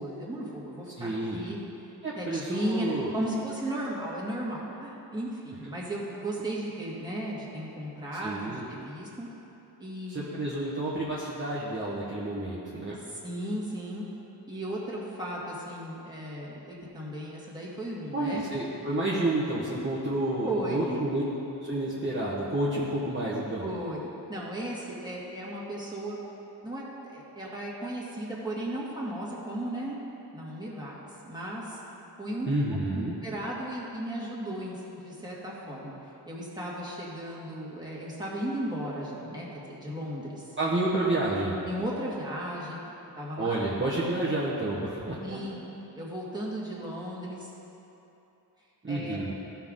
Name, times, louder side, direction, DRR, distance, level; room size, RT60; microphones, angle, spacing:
voice 1, 0.0-1.6 2.2-9.3 9.8-10.3 13.2-14.1 14.5-18.5 20.4-21.0 23.6-24.0 24.3-26.2 26.6-30.0 30.3-30.9 31.2-31.8 32.2-32.5 32.9-35.9 36.3-40.5 41.7-42.8 43.2-43.6 45.2-45.6 46.0-47.5 48.9-49.3, right 1 dB, 10° right, -7 dB, 2.0 m, -35 dB
voice 2, 1.0-1.4 2.0-3.1 8.2-8.7 10.1-13.0 18.1-21.2 21.6-23.7 32.4-33.1 40.6-41.6 43.4-45.4 48.8-49.3, right 2 dB, 25° right, -8 dB, 1.2 m, -29 dB
14.0 x 5.7 x 3.8 m, 3.0 s
wide cardioid pair, 95°, 43 cm